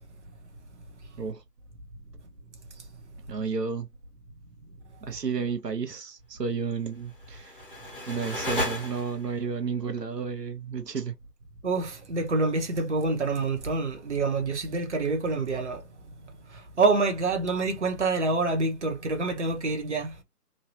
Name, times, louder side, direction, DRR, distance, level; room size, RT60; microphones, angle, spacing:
voice 1, 3.3-3.9 5.0-7.6 8.1-11.1, right 5 dB, 90° right, 0.7 m, -32 dB
sound 1, 7.1-9.5, left 1 dB, 35° left, 1.0 m, -34 dB
voice 2, 11.6-15.8 16.5-20.1, right 3 dB, 45° right, 0.8 m, -27 dB
3.1 x 2.2 x 2.7 m
figure-of-eight pair, 155°, 48 cm